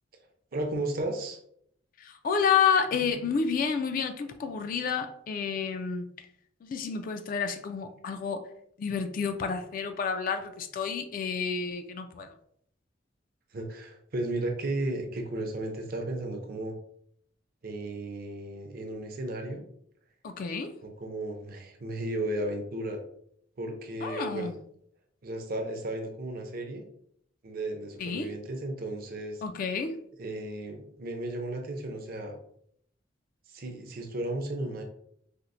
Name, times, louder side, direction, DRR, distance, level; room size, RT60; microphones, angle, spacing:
voice 1, 0.5-1.4 13.5-16.8 17.6-19.6 20.8-23.0 23.6-24.5 25.2-26.8 27.4-29.4 30.2-32.4 33.5-34.8, right 1 dB, 50° right, 3 dB, 0.6 m, -34 dB
voice 2, 2.0-6.1 6.6-8.4 8.8-12.3 20.2-20.7 24.0-24.5 28.0-28.3 29.4-30.0, left 6 dB, 45° left, 8 dB, 0.3 m, -30 dB
4.3 x 2.0 x 2.5 m, 0.68 s
head